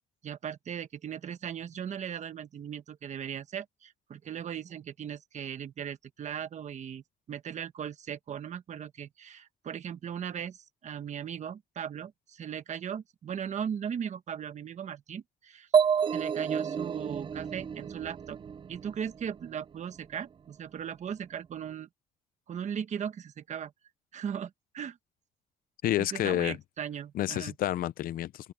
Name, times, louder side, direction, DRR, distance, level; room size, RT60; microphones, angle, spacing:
voice 1, 0.2-15.7 16.1-18.4 18.7-21.9 22.5-23.7 24.1-25.0 26.0-27.5, right 8 dB, 50° right, 1.2 m, -38 dB
sound 1, 15.7-19.4, right 7 dB, 35° right, 0.5 m, -29 dB
voice 2, 25.8-26.6 27.1-28.5, left 13 dB, 70° left, 0.5 m, -29 dB
cardioid pair, 140°, 16 cm